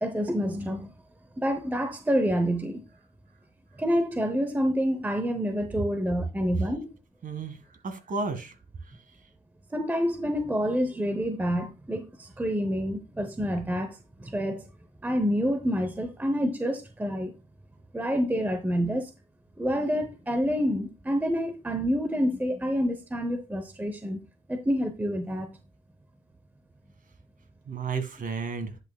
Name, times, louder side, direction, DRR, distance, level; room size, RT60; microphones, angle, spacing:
voice 1, 0.0-0.9 1.4-2.8 3.8-6.9 9.7-14.6 15.0-17.3 17.9-19.1 19.6-24.2 24.5-25.6, equal, 10° right, 0.8 m, -28 dB
voice 2, 7.2-9.0 27.7-28.8, right 4 dB, 45° right, 1.9 m, -33 dB
10.5 x 5.9 x 2.3 m
cardioid pair, 90°, 21 cm